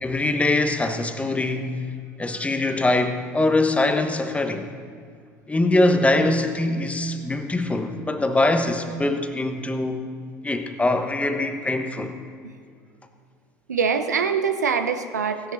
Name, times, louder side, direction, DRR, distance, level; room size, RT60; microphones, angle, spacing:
voice 1, 0.0-1.8 2.2-4.7 5.5-10.0 10.4-12.1, left 2 dB, 15° left, 7 dB, 1.2 m, -23 dB
voice 2, 13.7-15.5, right 6 dB, 90° right, 8 dB, 0.7 m, -24 dB
16.0 x 11.0 x 4.1 m, 2.2 s
hypercardioid pair, 70°, 9 cm